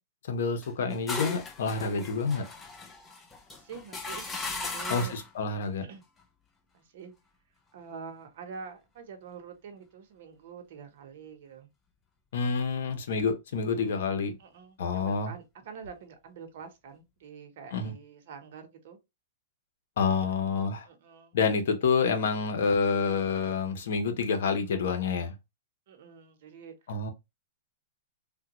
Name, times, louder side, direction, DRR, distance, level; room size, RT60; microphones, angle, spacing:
voice 1, 0.3-2.4 4.9-5.8 12.3-14.4 14.8-15.3 17.7-17.9 20.0-20.9 21.3-25.3 26.9-27.1, left 5 dB, 70° left, 0.9 m, -28 dB
sound 1, 0.6-5.3, left 3 dB, 15° left, 0.5 m, -38 dB
voice 2, 3.5-4.2 4.6-5.2 5.9-6.0 6.7-7.1 7.7-11.7 13.5-14.0 14.4-19.0 20.3-20.4 20.8-21.4 25.9-26.7, right 6 dB, 55° right, 0.9 m, -46 dB
3.5 x 2.3 x 2.9 m
hypercardioid pair, 155°, 0 cm